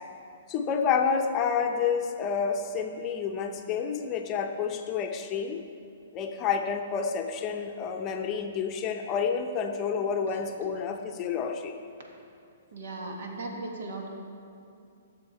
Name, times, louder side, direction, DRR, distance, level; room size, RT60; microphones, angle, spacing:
voice 1, 0.5-5.6 6.1-11.7, left 6 dB, 25° left, 4 dB, 0.7 m, -29 dB
voice 2, 12.7-14.1, right 2 dB, 70° right, 0 dB, 1.9 m, -37 dB
13.5 x 7.0 x 4.2 m, 2.5 s
hypercardioid pair, 145°, 0 cm